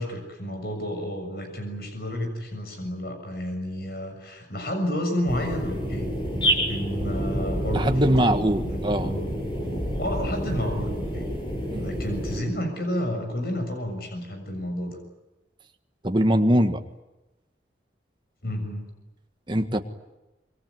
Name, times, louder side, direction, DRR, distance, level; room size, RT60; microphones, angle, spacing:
voice 1, 0.0-6.1 6.4-9.2 10.0-11.3 11.7-15.0 18.4-18.9, equal, 60° left, 5 dB, 6.9 m, -31 dB
sound 1, 5.3-12.4, equal, 30° left, 7.4 m, -29 dB
voice 2, 7.7-9.1 11.7-11.8 16.0-16.8 19.5-19.8, equal, 25° right, 6 dB, 1.6 m, -22 dB
26.0 x 22.5 x 9.6 m, 1.0 s
head